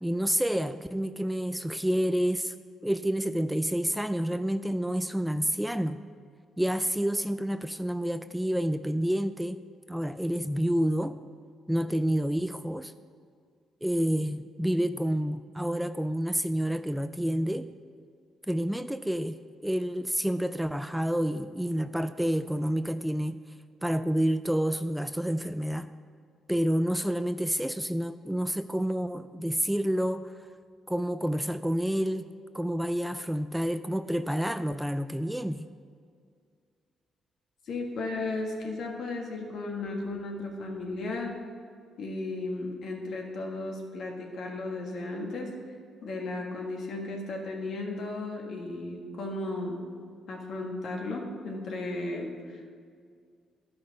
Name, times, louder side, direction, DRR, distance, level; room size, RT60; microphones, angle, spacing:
voice 1, 0.0-2.5 2.8-6.0 6.6-9.6 9.9-11.2 11.7-12.9 13.8-17.7 18.5-19.4 19.6-23.4 23.8-25.9 26.5-30.5 30.9-35.7, equal, 5° right, 11 dB, 0.3 m, -29 dB
voice 2, 37.7-41.3 42.0-45.5 46.0-49.8 50.3-52.6, left 2 dB, 65° left, 0 dB, 1.7 m, -35 dB
12.0 x 5.7 x 5.2 m, 2.2 s
supercardioid pair, 60°, 0 cm